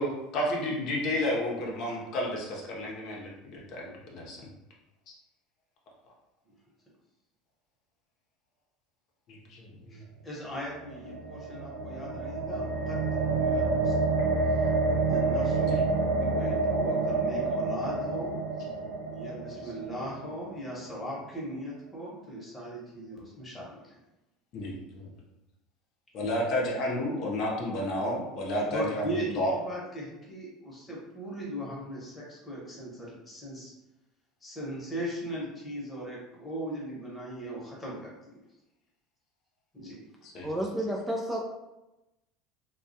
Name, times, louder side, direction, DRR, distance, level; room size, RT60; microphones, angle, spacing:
voice 1, 0.0-3.8 4.1-4.4 9.3-10.0 15.6-15.8 24.5-25.1 26.1-29.5 40.3-40.5, left 1 dB, 55° left, -2 dB, 0.6 m, -31 dB
voice 2, 9.9-14.2 14.5-14.6 14.9-15.8 16.2-18.4 19.1-24.0 28.7-33.7 34.4-38.3 39.7-40.0, right 1 dB, 15° left, -5 dB, 1.0 m, -39 dB
sound 1, 10.7-20.8, right 3 dB, 80° right, 0.5 m, -28 dB
voice 3, 40.4-41.4, equal, 10° right, -1 dB, 0.3 m, -31 dB
2.2 x 2.1 x 2.7 m, 0.96 s
supercardioid pair, 100°, 0 cm